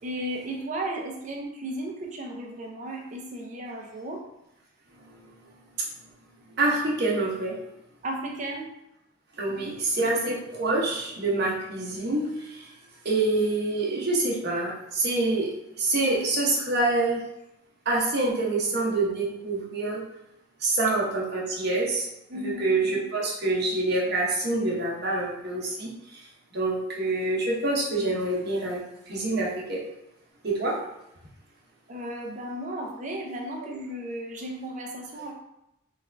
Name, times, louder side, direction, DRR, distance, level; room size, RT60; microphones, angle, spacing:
voice 1, 0.0-4.2 8.0-8.7 9.4-10.1 22.3-22.7 31.9-35.3, right 1 dB, 40° right, 0 dB, 0.6 m, -35 dB
voice 2, 6.6-7.5 9.4-12.6 13.0-15.5 15.8-17.2 17.8-20.0 20.6-22.1 22.3-25.9 26.5-28.8 29.1-29.8 30.4-30.8, right 2 dB, 55° right, -4 dB, 0.9 m, -26 dB
3.4 x 2.4 x 3.4 m, 0.85 s
head